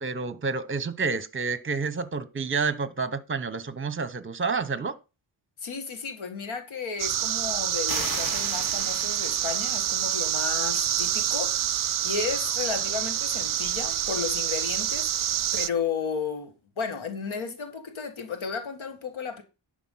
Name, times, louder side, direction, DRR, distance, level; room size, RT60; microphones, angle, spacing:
voice 1, 0.0-5.0, right 4 dB, 25° right, 0.8 m, -29 dB
voice 2, 5.6-19.4, left 6 dB, 80° left, 1.8 m, -33 dB
sound 1, 7.0-15.7, right 11 dB, 45° right, 0.4 m, -27 dB
sound 2, 7.9-10.4, left 2 dB, 45° left, 2.6 m, -38 dB
11.5 x 5.0 x 5.6 m
wide cardioid pair, 105°, 47 cm